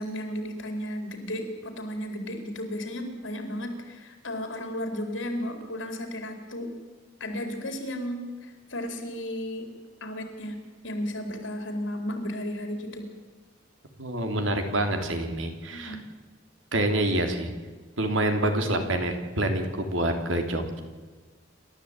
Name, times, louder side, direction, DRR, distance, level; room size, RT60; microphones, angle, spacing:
voice 1, 0.0-6.7 7.2-9.7 10.0-10.6 10.8-13.1 15.7-16.0, equal, 70° left, 5 dB, 4.5 m, -34 dB
voice 2, 14.0-16.0 16.7-17.5 18.0-20.8, right 1 dB, 80° right, 5 dB, 3.5 m, -27 dB
28.0 x 13.5 x 9.1 m, 1.3 s
head